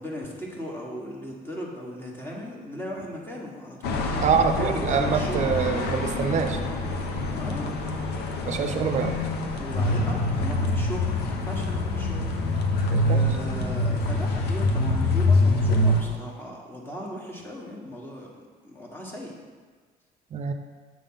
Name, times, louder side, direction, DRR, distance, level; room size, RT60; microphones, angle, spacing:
voice 1, 0.0-5.4 7.3-7.7 8.5-8.9 9.6-12.3 13.0-18.3 18.6-19.3, equal, 15° left, -3 dB, 1.5 m, -37 dB
sound 1, 3.8-16.0, left 2 dB, 75° left, 0.9 m, -25 dB
voice 2, 4.2-6.6 8.5-9.1 12.9-13.3 20.3-20.5, right 6 dB, 45° right, 7 dB, 0.6 m, -25 dB
7.4 x 3.7 x 5.6 m, 1.5 s
cardioid pair, 110°, 17 cm